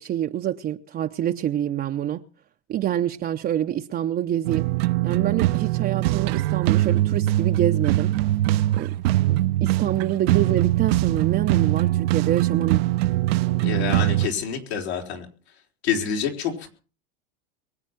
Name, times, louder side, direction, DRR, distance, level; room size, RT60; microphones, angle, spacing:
voice 1, 0.0-2.3 2.7-4.7 5.0-8.1 8.7-9.0 9.3-12.8, right 11 dB, 30° right, 0.7 m, -26 dB
sound 1, 4.4-14.3, right 16 dB, 70° right, 0.7 m, -22 dB
voice 2, 13.6-15.3 15.8-16.7, left 7 dB, 80° left, 4.5 m, -27 dB
23.0 x 8.4 x 5.9 m
hypercardioid pair, 110°, 32 cm